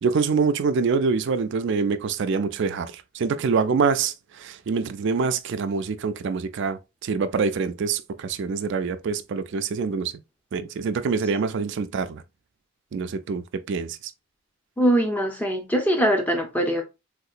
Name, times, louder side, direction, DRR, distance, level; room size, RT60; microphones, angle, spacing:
voice 1, 0.0-10.1 10.5-12.2 12.9-14.0, right 5 dB, 50° right, 0.3 m, -25 dB
voice 2, 14.8-16.8, right 1 dB, 5° left, 0.6 m, -22 dB
3.6 x 2.8 x 2.4 m
head